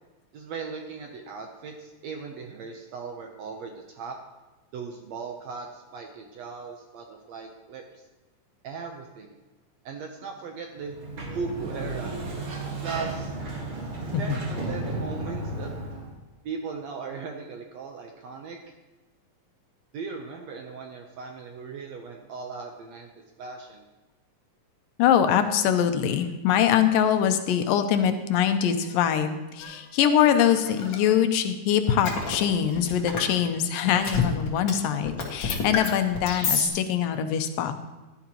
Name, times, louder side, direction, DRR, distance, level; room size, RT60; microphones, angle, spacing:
voice 1, 0.3-4.2 4.7-8.0 8.6-9.4 9.8-11.0 11.3-12.2 12.8-13.3 14.1-15.7 16.4-18.6 19.9-23.1 23.4-23.8, right 5 dB, 70° right, 2 dB, 1.7 m, -38 dB
Sliding door, 10.8-16.1, right 2 dB, 50° right, 2.6 m, -33 dB
voice 2, 25.0-37.7, left 9 dB, 80° left, 8 dB, 2.4 m, -23 dB
sound 1, 29.6-29.7 30.6-31.0 32.0-33.3 33.8-34.7 34.9-36.7, left 5 dB, 45° left, 1.8 m, -28 dB
15.5 x 11.0 x 3.0 m, 1.1 s
omnidirectional pair, 3.9 m